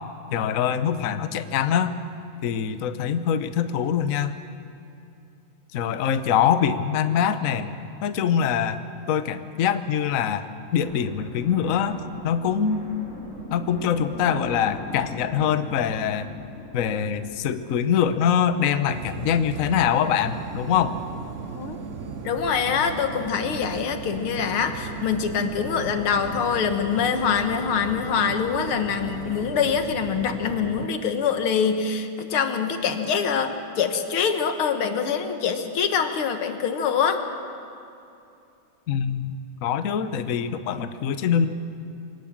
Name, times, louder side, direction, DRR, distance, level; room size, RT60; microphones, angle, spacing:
voice 1, 0.3-1.9 2.4-4.4 5.7-7.8 8.0-8.8 9.1-10.5 10.7-12.8 13.5-16.3 16.7-21.0 38.9-39.3 39.6-41.5, left 8 dB, 55° left, 10 dB, 1.0 m, -24 dB
sound 1, 10.8-18.2, equal, 40° left, 4.9 m, -40 dB
sound 2, 18.9-30.9, right 5 dB, 55° right, 0.9 m, -36 dB
voice 2, 22.2-37.2, left 7 dB, 90° left, 7 dB, 2.2 m, -24 dB
24.0 x 18.5 x 7.4 m, 2.6 s
omnidirectional pair, 2.3 m